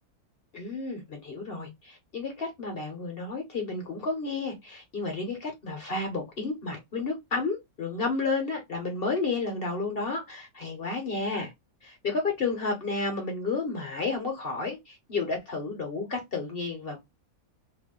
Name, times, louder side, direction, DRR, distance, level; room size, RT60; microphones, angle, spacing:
voice 1, 0.5-11.5 11.8-17.0, left 3 dB, 45° left, 0.9 m, -31 dB
2.6 x 2.4 x 3.6 m
omnidirectional pair, 1.6 m